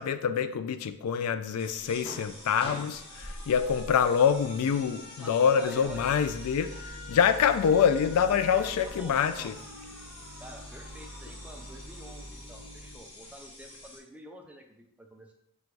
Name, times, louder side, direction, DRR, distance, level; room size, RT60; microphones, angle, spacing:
voice 1, 0.0-9.5, left 7 dB, 75° left, 13 dB, 0.3 m, -26 dB
sound 1, 1.6-14.0, left 1 dB, 25° left, 0.8 m, -46 dB
Alarm, 1.9-13.0, left 1 dB, 50° left, 1.1 m, -51 dB
voice 2, 5.2-6.0 8.5-9.5 10.4-15.3, equal, 5° right, 3 dB, 0.3 m, -48 dB
sound 2, 5.8-12.9, equal, 70° right, 0.7 m, -45 dB
3.8 x 2.3 x 4.5 m, 0.75 s
head